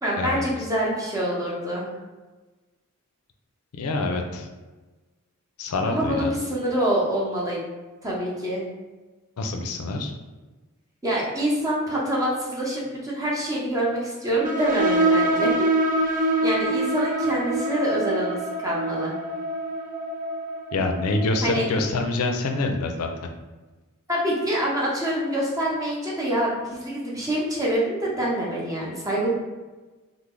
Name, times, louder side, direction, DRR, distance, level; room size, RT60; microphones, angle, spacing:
voice 1, 0.0-1.9 5.9-7.6 8.0-8.6 11.0-15.7 16.1-19.1 21.4-21.7 24.1-29.3, right 1 dB, 15° right, -5 dB, 0.7 m, -26 dB
voice 2, 3.7-4.5 5.6-6.3 9.4-10.1 20.7-23.1, left 2 dB, 80° left, 4 dB, 0.4 m, -26 dB
sound 1, 14.4-21.7, right 1 dB, 40° right, 0.3 m, -25 dB
3.1 x 2.0 x 3.6 m, 1.2 s
head